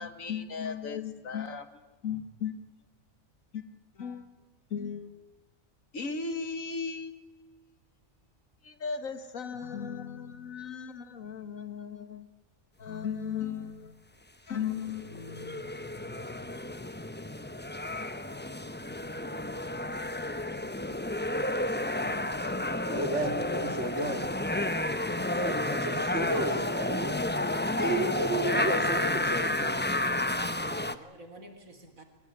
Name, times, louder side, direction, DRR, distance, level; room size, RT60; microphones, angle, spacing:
voice 1, 0.0-1.7 2.0-2.5 3.5-3.6 4.0-4.3 4.7-5.1 5.9-7.3 8.6-12.3 12.8-14.0 14.5-15.6, left 6 dB, 80° left, 2.0 m, -36 dB
sound 1, 14.8-31.0, left 1 dB, 10° left, 0.7 m, -31 dB
voice 2, 22.8-24.5 25.3-29.8, right 1 dB, 55° right, 3.0 m, -33 dB
voice 3, 30.4-32.0, right 2 dB, 80° right, 4.0 m, -48 dB
22.5 x 21.0 x 9.7 m
omnidirectional pair, 1.4 m